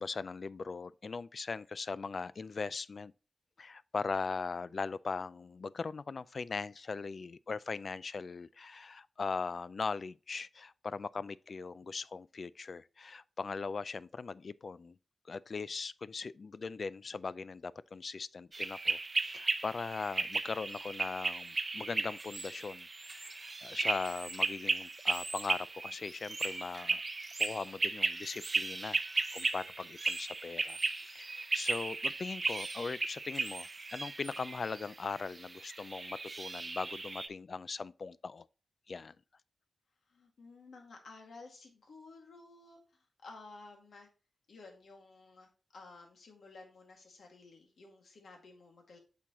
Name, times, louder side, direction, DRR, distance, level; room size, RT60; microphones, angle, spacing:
voice 1, 0.0-3.1 3.6-15.0 15.2-27.0 27.4-38.5 38.9-39.2, left 4 dB, 50° left, 0.3 m, -40 dB
sound 1, 18.5-37.3, right 3 dB, 35° right, 0.7 m, -36 dB
voice 2, 40.0-44.1 44.5-49.0, left 3 dB, 75° left, 2.1 m, -54 dB
8.3 x 6.1 x 3.0 m
wide cardioid pair, 100°, 0 cm